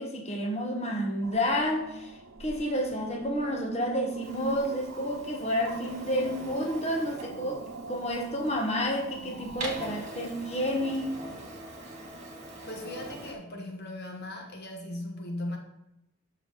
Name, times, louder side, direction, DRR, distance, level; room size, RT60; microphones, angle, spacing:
voice 1, 0.0-7.6 7.9-11.1, equal, 30° left, 1.4 m, -30 dB
Wilderness soundscape, 1.2-9.9, right 3 dB, 65° right, 0.9 m, -44 dB
Printer, 4.2-13.3, right 2 dB, 35° right, 2.2 m, -43 dB
voice 2, 12.6-15.6, left 1 dB, 50° left, 1.3 m, -38 dB
13.0 x 5.7 x 4.0 m
head